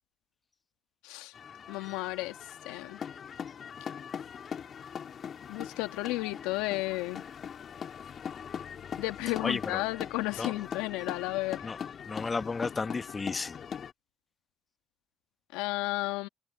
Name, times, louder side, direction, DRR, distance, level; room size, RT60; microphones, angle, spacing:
sound 1, 1.3-13.9, left 7 dB, 55° left, 4.1 m, -41 dB
voice 1, 1.7-2.4 2.7-3.0 5.5-7.2 9.0-11.6 15.5-16.3, left 20 dB, 80° left, 1.7 m, -33 dB
voice 2, 9.4-9.8 10.4-10.5 11.6-11.8 12.1-13.6, left 4 dB, 35° left, 1.8 m, -33 dB
hypercardioid pair, 50°, 0 cm